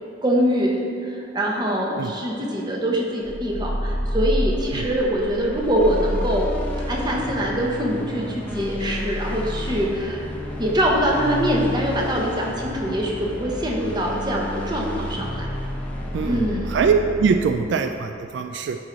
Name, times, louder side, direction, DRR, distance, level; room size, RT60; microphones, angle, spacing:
voice 1, 0.2-6.5 6.9-10.2 10.6-15.5 16.2-16.8, equal, 25° right, -2 dB, 1.0 m, -24 dB
sound 1, 3.2-17.8, equal, 10° left, 0.8 m, -30 dB
voice 2, 16.1-18.8, right 5 dB, 70° right, 6 dB, 0.3 m, -22 dB
10.0 x 4.7 x 4.0 m, 2.7 s
head